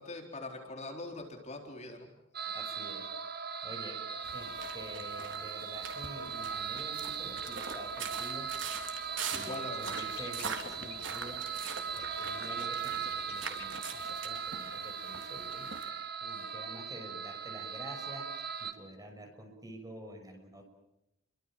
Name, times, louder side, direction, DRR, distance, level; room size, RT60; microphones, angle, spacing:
voice 1, 0.0-2.1 9.3-10.0, left 2 dB, 35° left, 2 dB, 4.1 m, -42 dB
sound 1, 2.3-18.7, right 6 dB, 50° right, 2.5 m, -39 dB
voice 2, 2.5-3.1 3.6-4.0 4.3-8.5 9.3-20.6, right 1 dB, 20° right, 3 dB, 6.6 m, -48 dB
sound 2, 4.2-15.9, right 6 dB, 70° right, 3.8 m, -44 dB
sound 3, 9.1-9.3 9.7-13.9, left 6 dB, 55° left, 3.0 m, -51 dB
29.5 x 25.0 x 7.6 m, 0.89 s
head